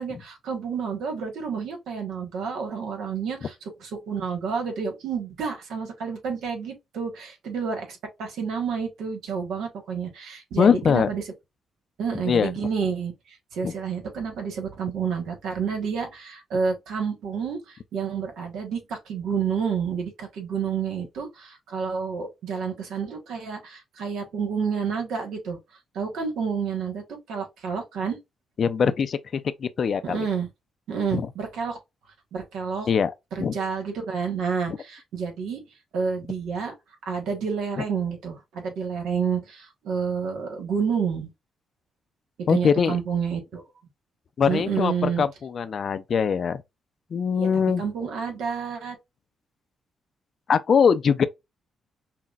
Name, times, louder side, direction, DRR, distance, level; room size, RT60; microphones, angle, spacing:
voice 1, 0.0-11.2 12.0-25.6 25.9-28.2 30.0-30.5 30.9-31.8 32.3-32.9 33.3-35.6 35.9-36.7 37.0-41.3 42.4-43.6 44.5-45.2 47.3-47.5 47.8-49.0, right 6 dB, 85° right, 1.3 m, -29 dB
voice 2, 10.6-11.1 12.3-12.5 13.6-13.7 28.6-30.3 31.1-31.3 32.9-33.1 33.4-33.6 34.7-34.8 42.5-43.0 44.4-46.6 47.1-47.8 50.5-51.3, left 6 dB, 55° left, 0.4 m, -22 dB
5.8 x 2.1 x 2.4 m
cardioid pair, 70°, 0 cm